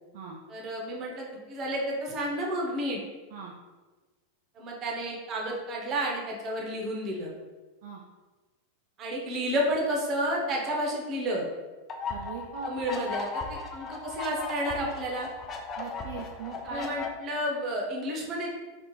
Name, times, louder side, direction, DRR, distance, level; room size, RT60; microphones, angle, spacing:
voice 1, 0.5-3.0 4.5-7.3 9.0-11.5 12.6-15.3 16.6-18.5, right 1 dB, 30° right, -1 dB, 0.8 m, -31 dB
sound 1, 11.9-17.1, left 4 dB, 25° left, 0.4 m, -37 dB
voice 2, 12.1-13.1 15.8-16.9, right 5 dB, 50° right, -1 dB, 0.4 m, -40 dB
3.4 x 2.4 x 3.1 m, 1.3 s
figure-of-eight pair, 90°, 0 cm